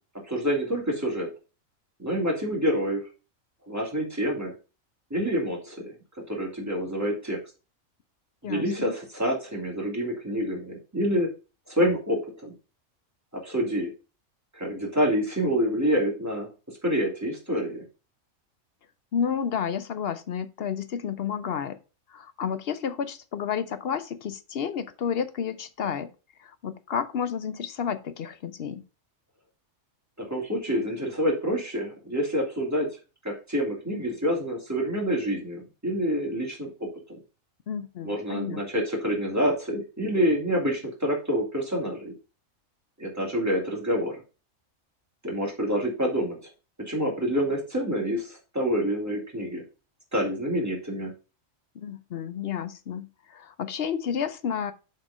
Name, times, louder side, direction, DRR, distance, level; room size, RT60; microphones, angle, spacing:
voice 1, 0.2-1.3 2.0-3.0 3.7-4.5 5.1-5.9 6.3-7.4 8.4-11.3 11.7-12.5 13.3-13.9 14.5-17.9 30.2-32.9 33.2-37.2 38.0-42.1 43.0-44.2 45.2-46.4 46.8-49.6 50.1-51.1, equal, 10° right, 2.7 m, -27 dB
voice 2, 8.4-8.9 19.1-21.8 22.1-26.1 26.4-28.8 37.7-38.6 51.8-54.7, left 7 dB, 55° left, 0.7 m, -31 dB
7.4 x 4.4 x 4.9 m
omnidirectional pair, 1.4 m